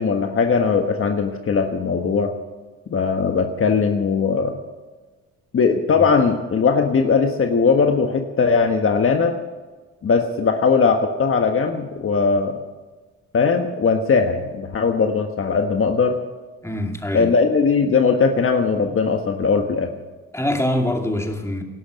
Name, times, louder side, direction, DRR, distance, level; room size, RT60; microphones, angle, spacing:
voice 1, 0.0-2.3 2.9-4.6 5.5-9.3 10.0-12.5 13.3-16.2 17.1-19.9, left 5 dB, 45° left, 1.4 m, -19 dB
voice 2, 16.6-17.3 20.3-21.6, left 1 dB, 10° left, 2.4 m, -24 dB
18.0 x 12.0 x 5.3 m
cardioid pair, 90°, 30 cm